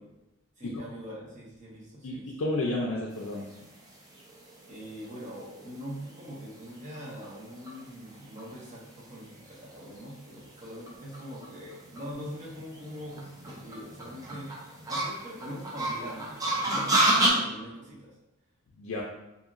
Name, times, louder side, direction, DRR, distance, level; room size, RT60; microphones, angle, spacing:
voice 1, 0.6-2.3 4.7-18.2, equal, 35° right, -4 dB, 0.8 m, -43 dB
voice 2, 2.0-3.5 18.8-19.0, left 2 dB, 70° left, -3 dB, 0.4 m, -31 dB
sound 1, 3.4-17.3, right 1 dB, 15° right, 0.4 m, -32 dB
2.8 x 2.7 x 2.4 m, 0.93 s
head